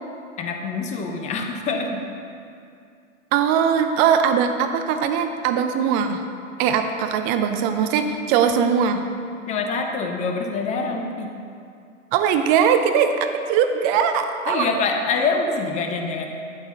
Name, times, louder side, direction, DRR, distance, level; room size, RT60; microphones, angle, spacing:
voice 1, 0.4-2.1 9.5-11.3 14.5-16.3, left 4 dB, 15° left, 4 dB, 0.8 m, -25 dB
voice 2, 3.3-6.2 6.6-9.0 12.1-14.7, right 7 dB, 20° right, 7 dB, 0.5 m, -20 dB
12.5 x 8.3 x 3.8 m, 2.5 s
figure-of-eight pair, 110°, 41 cm